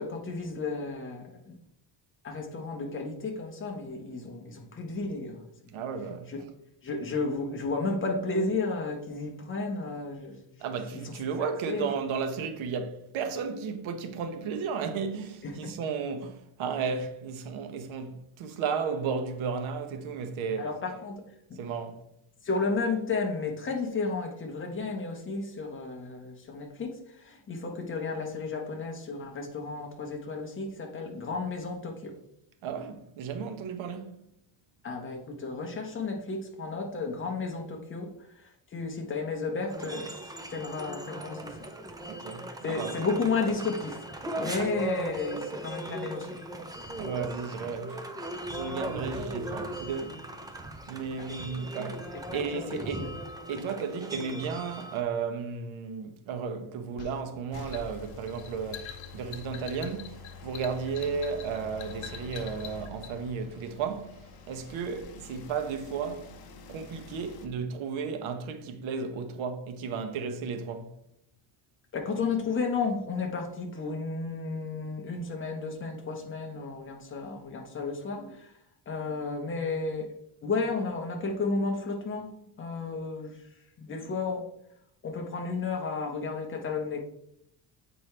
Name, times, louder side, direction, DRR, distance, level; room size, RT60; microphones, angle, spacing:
voice 1, 0.0-1.6 2.2-5.7 6.3-6.4 6.8-10.4 10.9-11.1 11.4-11.9 15.4-15.7 20.6-21.1 22.4-32.1 34.8-38.1 38.3-40.2 40.5-41.6 42.6-46.4 46.9-47.0 51.2-51.6 52.1-53.1 71.9-78.5 78.9-80.1 80.4-82.3 82.6-83.4 83.8-84.5 85.0-87.1, left 4 dB, 25° left, 1.1 m, -33 dB
voice 2, 5.7-6.3 10.6-20.7 21.6-22.0 32.6-34.2 42.1-43.0 44.6-44.7 46.9-48.1 48.5-50.2 50.9-53.1 53.5-66.3 66.7-70.9, right 5 dB, 80° right, 1.0 m, -34 dB
sound 1, 39.7-55.0, right 1 dB, 10° right, 0.3 m, -38 dB
sound 2, 57.0-63.1, left 9 dB, 75° left, 1.0 m, -45 dB
sound 3, 57.5-67.5, left 4 dB, 50° left, 0.9 m, -47 dB
7.9 x 4.6 x 3.3 m
cardioid pair, 160°, 47 cm